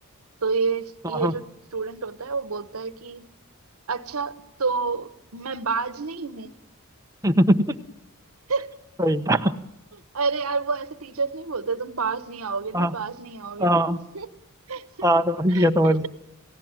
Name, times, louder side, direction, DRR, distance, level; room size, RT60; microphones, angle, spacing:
voice 1, 0.4-1.4 1.7-3.3 3.9-6.5 8.5-8.7 10.1-14.3 14.7-15.1 15.5-16.1, right 4 dB, 80° right, 14 dB, 1.2 m, -29 dB
voice 2, 7.2-7.8 9.0-9.5 12.7-12.9 13.6-14.0 15.0-16.1, equal, 15° right, 6 dB, 1.0 m, -20 dB
28.5 x 16.5 x 9.0 m, 0.89 s
head